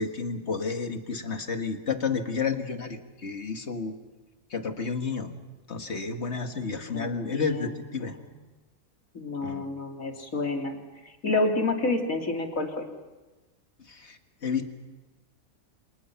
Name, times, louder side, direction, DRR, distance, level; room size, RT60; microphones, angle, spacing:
voice 1, 0.0-3.9 4.5-5.3 5.7-8.1 9.4-9.7 13.9-14.7, left 5 dB, 55° left, 6 dB, 2.0 m, -31 dB
voice 2, 6.9-8.3 9.1-10.8 11.2-12.9, left 2 dB, 85° left, 2 dB, 3.1 m, -29 dB
29.5 x 26.0 x 5.8 m, 1.2 s
omnidirectional pair, 1.4 m